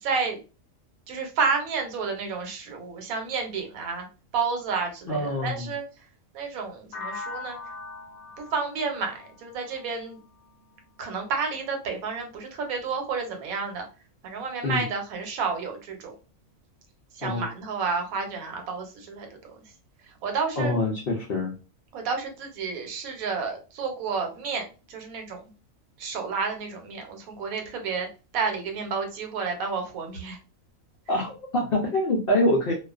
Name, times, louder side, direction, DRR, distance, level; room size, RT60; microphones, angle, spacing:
voice 1, 0.0-0.4 1.1-4.1 4.3-5.8 6.3-7.6 8.4-10.2 11.0-13.8 14.2-16.2 17.1-19.6 20.1-20.7 21.9-25.4 26.0-28.1 28.3-30.4, right 5 dB, 85° right, 4 dB, 1.1 m, -30 dB
voice 2, 5.1-5.7 14.6-14.9 17.2-17.5 20.6-21.5 31.1-32.7, left 1 dB, 65° left, -1 dB, 0.6 m, -25 dB
sound 1, 6.9-10.8, left 3 dB, 90° left, 1.1 m, -41 dB
2.3 x 2.3 x 2.3 m, 0.32 s
omnidirectional pair, 1.4 m